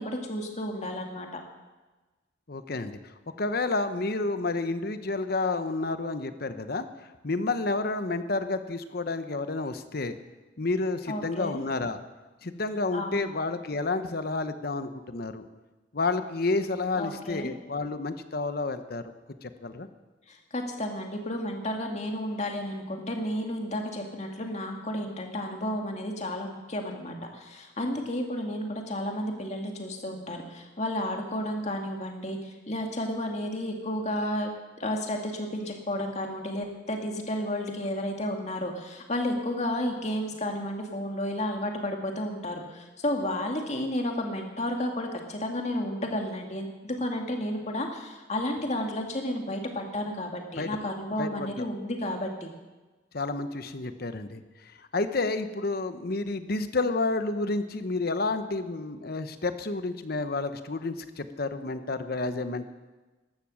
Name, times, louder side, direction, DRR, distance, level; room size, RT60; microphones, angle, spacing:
voice 1, 0.0-1.4 11.1-11.6 12.9-13.3 17.0-17.5 20.3-34.5 34.8-52.5, left 1 dB, 35° left, 2 dB, 2.0 m, -32 dB
voice 2, 2.5-3.1 3.4-10.2 10.6-12.0 12.4-15.4 15.9-19.0 19.4-19.9 50.6-50.7 51.2-51.6 53.1-62.7, left 3 dB, 50° left, 10 dB, 0.9 m, -30 dB
14.5 x 12.0 x 6.4 m, 1.2 s
head